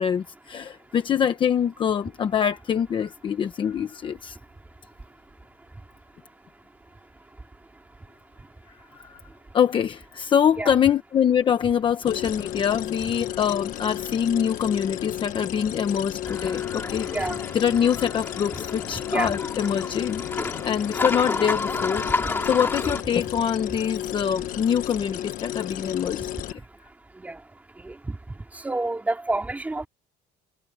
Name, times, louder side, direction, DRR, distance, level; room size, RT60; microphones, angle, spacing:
voice 1, 0.0-4.4 8.9-9.2 9.5-26.6, left 8 dB, 25° left, 1.0 m, -25 dB
sound 1, 12.1-26.5, left 12 dB, 50° left, 1.2 m, -33 dB
sound 2, 16.2-23.0, left 3 dB, 10° left, 3.0 m, -30 dB
voice 2, 27.8-28.2 28.6-29.9, right 2 dB, 10° right, 3.8 m, -28 dB
cardioid pair, 180°, 18 cm